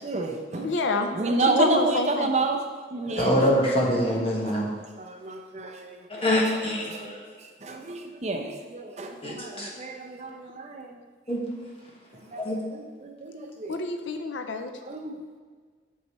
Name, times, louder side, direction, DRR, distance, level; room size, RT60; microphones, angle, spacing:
voice 1, 0.0-0.7 1.1-2.6 2.9-3.4 5.0-6.2 6.9-7.0 7.6-11.0 12.3-12.4 12.7-13.8 14.9-15.2, right 3 dB, 35° right, 3 dB, 0.6 m, -29 dB
voice 2, 0.5-2.3 13.7-14.7, left 3 dB, 80° left, 6 dB, 0.6 m, -28 dB
voice 3, 3.1-4.7 6.1-7.2 9.2-9.7 11.3-11.4 12.4-12.6, equal, 30° left, -3 dB, 1.4 m, -25 dB
8.3 x 6.5 x 3.1 m, 1.5 s
head